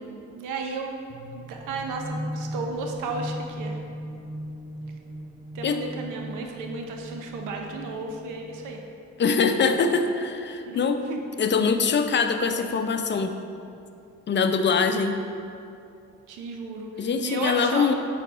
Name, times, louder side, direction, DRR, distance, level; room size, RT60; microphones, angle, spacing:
voice 1, 0.3-0.9 1.3-3.8 5.5-8.8 10.7-11.2 16.3-17.9, right 4 dB, 90° right, 2 dB, 0.7 m, -33 dB
sound 1, 1.1-8.9, equal, 15° right, 0.8 m, -37 dB
voice 2, 9.2-11.0 11.4-13.3 14.3-15.2 17.0-17.9, left 5 dB, 40° left, 7 dB, 0.5 m, -23 dB
6.0 x 4.6 x 4.9 m, 2.5 s
cardioid pair, 90°, 30 cm